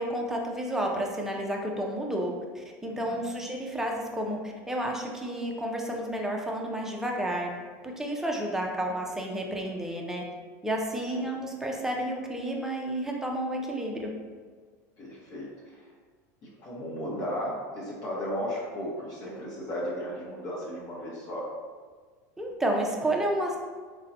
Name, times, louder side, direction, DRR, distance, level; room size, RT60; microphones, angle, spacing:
voice 1, 0.0-7.5 7.8-10.2 10.6-14.1 22.4-23.6, right 1 dB, 5° right, 0 dB, 0.4 m, -31 dB
voice 2, 2.9-3.3 15.0-15.8 16.6-21.5, equal, 45° left, -6 dB, 0.8 m, -35 dB
3.7 x 2.1 x 2.7 m, 1.5 s
supercardioid pair, 115°, 9 cm